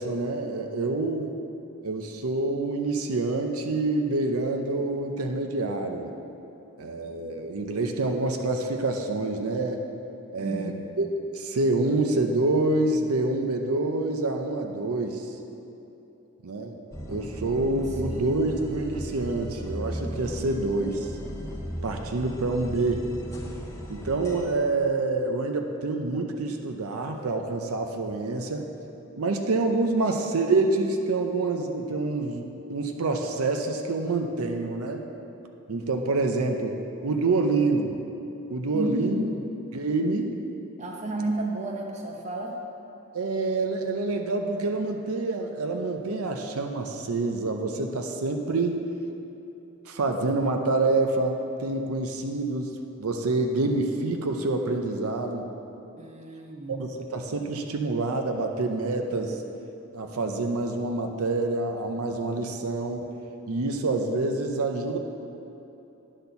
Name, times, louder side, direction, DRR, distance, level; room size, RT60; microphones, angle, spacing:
voice 1, 0.0-1.3 1.8-6.1 6.8-9.8 10.3-11.1 11.3-15.3 16.4-16.8 17.1-21.1 21.8-23.1 23.9-28.7 29.2-32.4 32.7-35.0 35.7-36.8 37.0-38.0 38.5-39.2 39.7-40.4 43.1-48.8 49.9-55.4 56.7-59.4 59.9-63.1 63.5-65.0, right 2 dB, 80° right, 4 dB, 0.6 m, -27 dB
voice 2, 10.4-10.7 18.0-18.4 38.7-39.4 40.8-42.6 56.0-56.8, right 1 dB, 30° right, 1 dB, 0.8 m, -32 dB
sound 1, 16.9-24.5, equal, 15° left, 0.6 m, -36 dB
9.9 x 4.3 x 6.7 m, 3.0 s
head